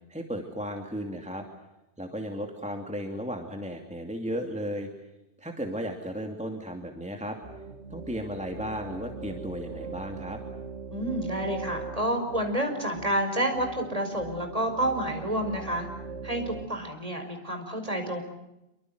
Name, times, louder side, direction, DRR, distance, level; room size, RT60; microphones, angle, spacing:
voice 1, 0.1-1.4 2.0-4.9 5.4-7.4 7.9-10.4, equal, 5° right, 3 dB, 2.7 m, -35 dB
sound 1, 7.4-16.7, right 4 dB, 90° right, 2.0 m, -41 dB
voice 2, 10.9-15.9 16.2-18.2, right 1 dB, 30° right, 5 dB, 5.4 m, -29 dB
27.5 x 24.5 x 8.0 m, 0.92 s
omnidirectional pair, 1.2 m